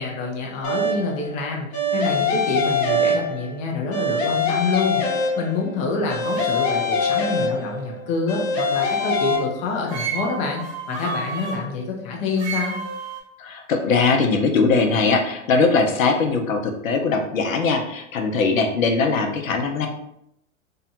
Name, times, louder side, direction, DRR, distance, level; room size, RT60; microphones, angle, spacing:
voice 1, 0.0-12.8, left 3 dB, 20° left, -1 dB, 0.3 m, -27 dB
sound 1, 0.6-1.2 1.7-3.6 3.9-5.7 6.1-7.9 8.3-9.4, left 2 dB, 55° left, 0.9 m, -23 dB
sound 2, 6.2-9.5 9.9-11.6 12.4-13.2, right 3 dB, 65° right, 1.2 m, -32 dB
voice 2, 13.4-19.9, left 4 dB, 85° left, 4 dB, 0.6 m, -20 dB
2.7 x 2.1 x 2.7 m, 0.77 s
hypercardioid pair, 110°, 39 cm